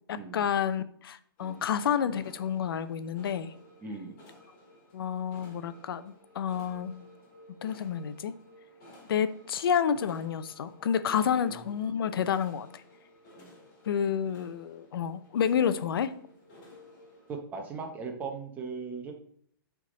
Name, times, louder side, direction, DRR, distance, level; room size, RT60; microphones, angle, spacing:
voice 1, 0.1-3.5 4.9-6.9 7.6-8.3 9.1-12.7 13.8-16.2, left 8 dB, 75° left, 14 dB, 0.6 m, -29 dB
sound 1, 1.4-17.4, left 1 dB, 35° left, 2.8 m, -55 dB
voice 2, 3.8-4.2 11.3-11.6 13.4-13.5 17.3-19.1, right 4 dB, 15° right, 2 dB, 0.9 m, -39 dB
8.2 x 3.6 x 3.9 m, 0.63 s
hypercardioid pair, 160°, 12 cm